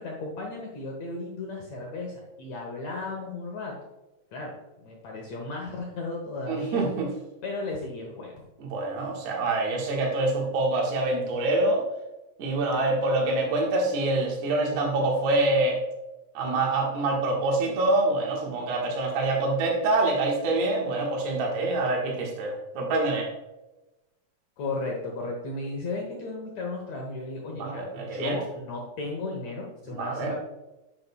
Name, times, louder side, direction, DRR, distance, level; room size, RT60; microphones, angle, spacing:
voice 1, 0.0-3.8 4.3-6.8 7.4-8.4 24.6-30.3, left 3 dB, 80° left, -1 dB, 1.5 m, -35 dB
voice 2, 6.5-7.1 8.6-11.8 12.4-15.8 16.3-23.3 27.6-28.4 29.9-30.3, right 2 dB, 75° right, -1 dB, 3.4 m, -26 dB
9.3 x 8.2 x 2.3 m, 1.0 s
omnidirectional pair, 4.7 m